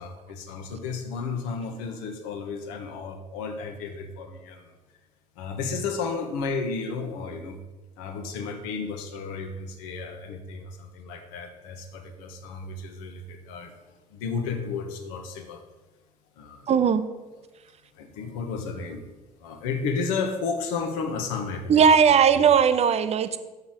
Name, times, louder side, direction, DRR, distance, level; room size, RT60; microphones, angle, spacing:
voice 1, 0.0-4.7 5.4-7.6 8.0-13.7 14.1-15.7 16.4-16.6 17.9-19.0 19.4-21.9 22.3-22.4, left 4 dB, 65° left, 5 dB, 1.1 m, -33 dB
voice 2, 16.7-17.1 21.7-23.4, right 7 dB, 35° right, 12 dB, 0.6 m, -18 dB
6.7 x 5.5 x 6.2 m, 1.2 s
figure-of-eight pair, 55°, 19 cm